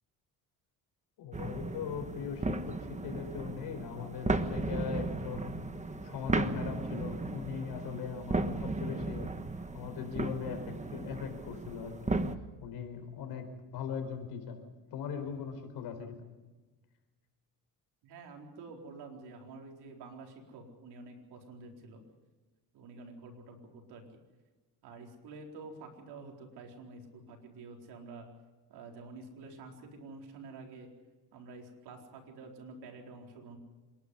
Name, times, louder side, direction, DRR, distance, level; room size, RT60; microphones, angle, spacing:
voice 1, 1.2-5.7 6.0-9.3 9.7-12.2 12.6-13.4 13.7-14.6 14.9-16.2, left 7 dB, 85° left, 6 dB, 4.5 m, -40 dB
sound 1, 1.3-12.3, right 3 dB, 20° right, 1.4 m, -35 dB
voice 2, 18.0-22.0 22.7-24.0 24.8-28.3 28.7-30.9 31.3-33.6, right 3 dB, 90° right, 2 dB, 4.3 m, -49 dB
27.0 x 11.5 x 9.9 m, 1.3 s
cardioid pair, 100°, 38 cm